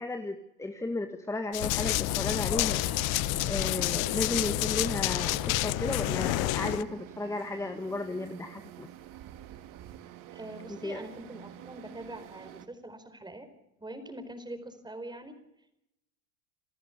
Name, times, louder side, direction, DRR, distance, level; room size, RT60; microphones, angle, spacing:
voice 1, 0.0-2.8 3.5-8.9 10.8-11.0, left 2 dB, 5° left, 8 dB, 1.6 m, -34 dB
Run, 1.5-6.8, left 20 dB, 80° left, 0.7 m, -31 dB
sound 1, 1.6-6.8, left 12 dB, 55° left, 1.8 m, -33 dB
sound 2, 2.1-12.7, right 12 dB, 55° right, 2.3 m, -48 dB
voice 2, 10.3-13.5 13.8-15.3, right 1 dB, 10° right, 9 dB, 4.5 m, -43 dB
28.5 x 14.0 x 8.2 m, 0.84 s
supercardioid pair, 105°, 41 cm